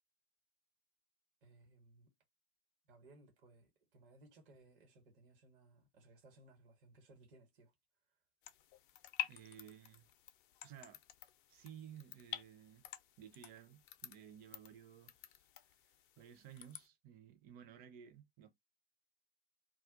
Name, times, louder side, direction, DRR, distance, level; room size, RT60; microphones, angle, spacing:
voice 1, 1.4-2.1 2.9-7.7, right 2 dB, 55° right, 1.2 m, -63 dB
sound 1, 8.4-16.9, left 13 dB, 50° left, 0.5 m, -50 dB
voice 2, 9.3-10.1 10.6-11.0 11.5-12.8 13.2-15.5 15.8-18.5, right 9 dB, 30° right, 0.6 m, -56 dB
2.3 x 2.3 x 3.6 m
figure-of-eight pair, 90°, 32 cm